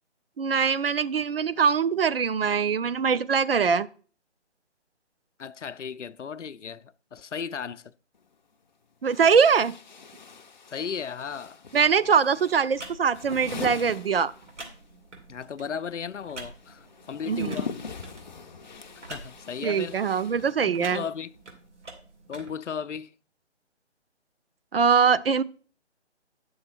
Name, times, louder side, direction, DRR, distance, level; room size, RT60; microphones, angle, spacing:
voice 1, 0.4-3.9 9.0-9.7 11.7-14.3 17.3-17.6 19.6-21.0 24.7-25.4, right 6 dB, 55° right, 0.5 m, -22 dB
voice 2, 5.4-7.9 10.7-11.6 15.3-17.7 19.1-20.0 20.6-21.3 22.3-23.1, left 7 dB, 85° left, 0.6 m, -35 dB
sound 1, 8.1-8.2 9.1-14.9 15.1-21.0, left 5 dB, 40° left, 0.5 m, -41 dB
sound 2, 11.8-22.5, right 2 dB, 75° right, 2.8 m, -47 dB
9.8 x 6.5 x 4.4 m
figure-of-eight pair, 150°, 35 cm